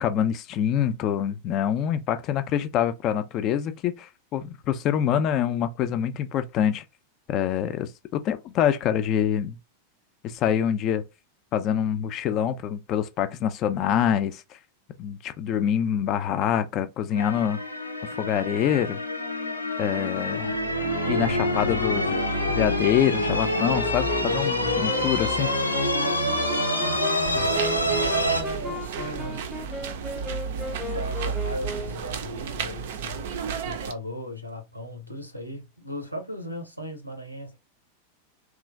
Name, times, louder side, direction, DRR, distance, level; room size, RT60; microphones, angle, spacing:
voice 1, 0.0-6.8 7.3-9.6 10.2-11.0 11.5-14.4 15.0-17.6 18.2-19.0 19.8-20.6 21.1-22.2 22.5-25.5, left 9 dB, 35° left, 0.3 m, -25 dB
sound 1, 17.2-28.4, left 1 dB, 85° left, 0.5 m, -26 dB
Wind instrument woodwind instrument, 23.7-32.1, left 2 dB, 5° left, 0.7 m, -35 dB
sound 2, 27.2-33.9, right 6 dB, 55° right, 0.4 m, -33 dB
voice 2, 27.3-29.5 30.9-33.2 33.6-37.6, equal, 90° right, 0.7 m, -37 dB
3.0 x 2.3 x 2.4 m
figure-of-eight pair, 90°, 0 cm